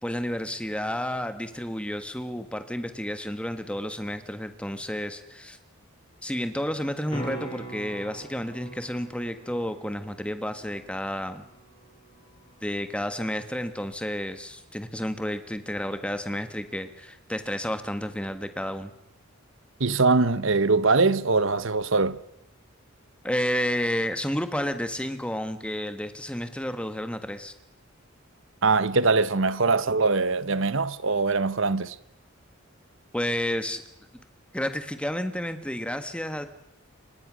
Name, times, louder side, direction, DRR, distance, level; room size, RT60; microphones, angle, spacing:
voice 1, 0.0-5.6 6.2-11.4 12.6-18.9 23.2-27.5 33.1-33.8 34.5-36.4, equal, 5° left, 1.5 m, -31 dB
sound 1, 7.1-13.1 17.8-17.9, right 1 dB, 25° left, 7.8 m, -43 dB
voice 2, 19.8-22.2 28.6-32.0, right 3 dB, 60° right, 1.0 m, -22 dB
28.5 x 24.0 x 6.3 m
head